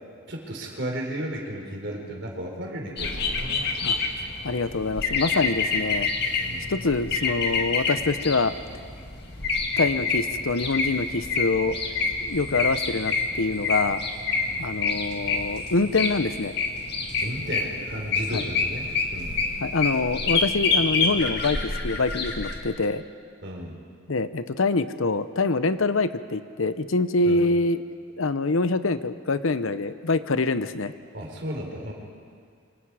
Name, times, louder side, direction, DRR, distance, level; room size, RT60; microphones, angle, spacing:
voice 1, 0.3-3.7 6.4-6.7 14.4-14.7 17.2-19.4 23.4-23.8 27.2-27.4 31.1-31.9, right 1 dB, 55° right, 0 dB, 4.4 m, -34 dB
sound 1, 3.0-22.6, left 4 dB, 50° left, 2.0 m, -27 dB
voice 2, 4.4-6.1 6.7-8.6 9.8-11.8 12.2-14.0 14.6-16.5 18.3-18.4 19.6-23.0 24.1-27.8 28.2-30.9, left 3 dB, 80° left, 12 dB, 0.8 m, -25 dB
25.5 x 25.5 x 4.9 m, 2.2 s
head